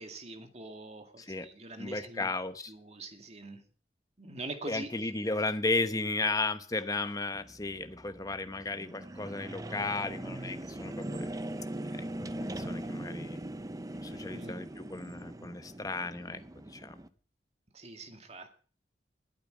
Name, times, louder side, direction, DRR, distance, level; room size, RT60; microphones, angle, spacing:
voice 1, 0.0-2.3 2.7-3.6 4.2-5.1 14.3-14.6 17.7-18.6, right 2 dB, 40° right, 6 dB, 2.2 m, -44 dB
voice 2, 1.2-1.5 1.8-2.7 4.7-11.4 12.2-12.3 12.6-13.5 14.0-16.4 16.7-16.9, left 3 dB, 20° left, 10 dB, 1.0 m, -34 dB
sound 1, 7.3-17.1, right 1 dB, 20° right, 0.7 m, -41 dB
20.0 x 8.9 x 5.0 m, 0.40 s
head